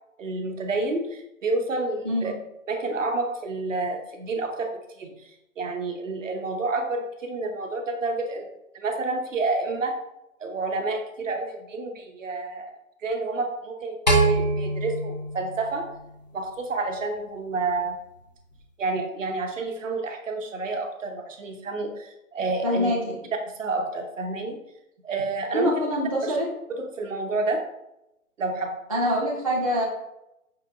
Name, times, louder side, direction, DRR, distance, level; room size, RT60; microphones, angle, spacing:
voice 1, 0.2-2.3 2.7-4.7 5.0-5.1 5.6-8.5 8.7-9.9 10.4-12.7 13.0-15.8 16.3-18.0 18.8-22.9 23.6-24.6 25.0-25.7 26.2-26.4 26.8-27.6 28.4-28.7, right 3 dB, 60° right, 4 dB, 0.9 m, -29 dB
sound 1, 14.1-16.4, right 2 dB, 35° left, 0.4 m, -24 dB
voice 2, 22.6-23.1 25.5-26.5 28.9-29.9, equal, 25° right, -7 dB, 0.4 m, -25 dB
5.7 x 2.9 x 2.4 m, 0.87 s
figure-of-eight pair, 150°, 42 cm